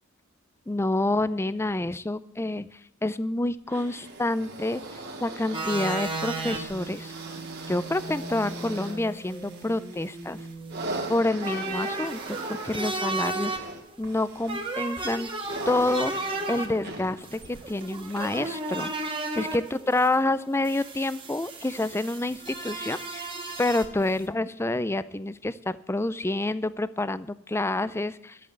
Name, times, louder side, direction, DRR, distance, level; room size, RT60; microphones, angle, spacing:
voice 1, 0.7-4.8 5.2-7.1 7.7-10.4 11.1-13.6 14.0-15.3 15.7-16.1 16.5-18.9 19.4-23.3 23.6-28.4, left 2 dB, 10° left, 16 dB, 0.4 m, -28 dB
sound 1, 3.7-19.1 19.9-20.0, right 2 dB, 50° right, 2.4 m, -40 dB
sound 2, 5.5-24.2, right 2 dB, 25° right, 1.7 m, -35 dB
12.0 x 8.5 x 8.0 m, 0.81 s
head